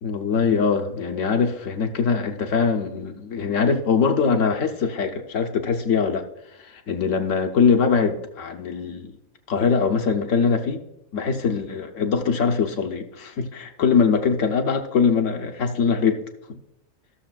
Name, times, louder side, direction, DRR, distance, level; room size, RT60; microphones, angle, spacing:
voice 1, 0.0-6.3 6.6-9.2 9.5-10.8 11.1-16.2 16.5-16.6, left 5 dB, 70° left, 1.2 m, -22 dB
14.5 x 6.6 x 2.3 m
omnidirectional pair, 1.4 m